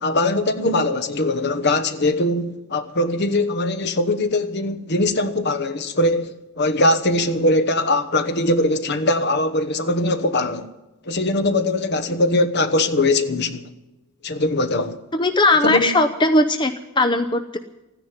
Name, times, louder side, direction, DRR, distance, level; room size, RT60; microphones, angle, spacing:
voice 1, 0.0-10.7 11.0-13.6 14.2-15.0 15.6-15.9, left 2 dB, 50° left, 1.2 m, -21 dB
voice 2, 15.1-17.6, left 2 dB, 20° left, 0.6 m, -18 dB
14.0 x 10.0 x 9.4 m
head